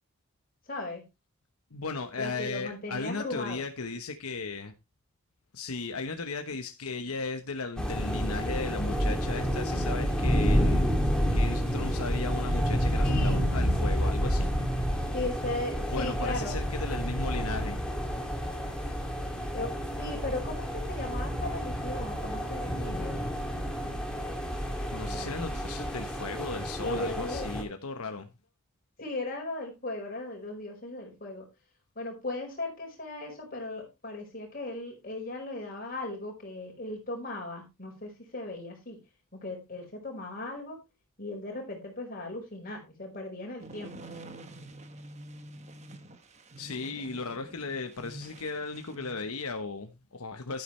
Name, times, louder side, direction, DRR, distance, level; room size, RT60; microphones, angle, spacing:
voice 1, 0.7-1.0 2.2-3.6 13.0-13.4 15.1-16.6 19.5-23.2 25.1-25.6 26.8-27.5 29.0-31.4 31.9-39.0 39.3-40.8 41.2-44.1, left 2 dB, 40° left, 4.9 m, -37 dB
voice 2, 1.7-4.7 5.5-10.8 11.3-14.5 15.9-17.8 24.9-28.3 46.6-50.6, left 3 dB, 80° left, 1.1 m, -36 dB
sound 1, 7.8-27.6, equal, 5° left, 2.4 m, -29 dB
sound 2, 43.6-49.3, right 1 dB, 30° right, 1.3 m, -47 dB
12.0 x 9.9 x 3.2 m
head